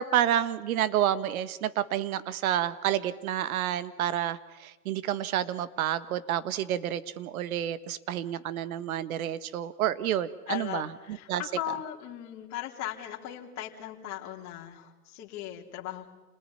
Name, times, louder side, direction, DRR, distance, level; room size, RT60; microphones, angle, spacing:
voice 1, 0.0-11.4, right 11 dB, 65° right, 14 dB, 1.6 m, -29 dB
voice 2, 10.5-16.1, left 12 dB, 35° left, 0 dB, 3.7 m, -38 dB
28.5 x 19.5 x 9.9 m, 1.1 s
hypercardioid pair, 125°, 46 cm